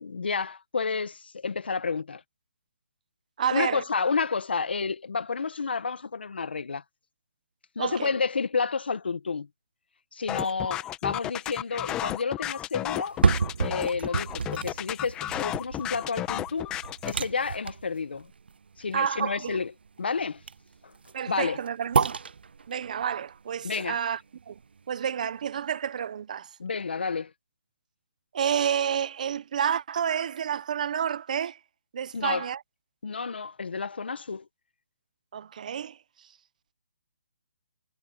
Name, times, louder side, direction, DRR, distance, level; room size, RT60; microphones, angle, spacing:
voice 1, 0.0-2.2 3.5-6.8 7.7-9.5 10.1-13.2 13.6-16.7 17.0-18.3 18.8-19.7 20.0-20.4 21.3-21.6 23.6-24.0 26.6-27.3 32.1-32.5 33.0-34.4, left 5 dB, 75° left, 1.5 m, -30 dB
voice 2, 3.4-3.8 7.8-8.1 18.9-19.6 21.1-22.2 22.7-24.2 24.5-24.6 24.9-26.5 28.3-31.6 31.9-32.6 35.3-36.0, right 8 dB, 45° right, 0.9 m, -29 dB
sound 1, 10.3-17.1, left 13 dB, 15° left, 1.0 m, -33 dB
sound 2, 12.9-25.0 25.4-25.5, right 5 dB, 75° right, 0.5 m, -31 dB
hypercardioid pair, 160°, 6 cm